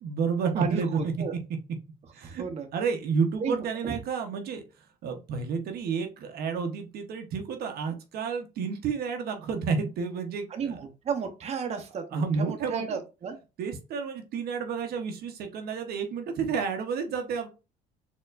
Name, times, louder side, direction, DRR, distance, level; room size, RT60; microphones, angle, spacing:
voice 1, 0.0-1.1 2.1-2.4 2.7-4.6 5.0-10.8 12.1-13.0 13.6-17.5, right 5 dB, 70° right, 5 dB, 0.8 m, -30 dB
voice 2, 0.6-1.3 2.2-2.7 3.4-4.0 10.5-13.3, right 6 dB, 40° right, 4 dB, 0.8 m, -33 dB
4.3 x 3.0 x 2.4 m, 0.29 s
cardioid pair, 110°, 17 cm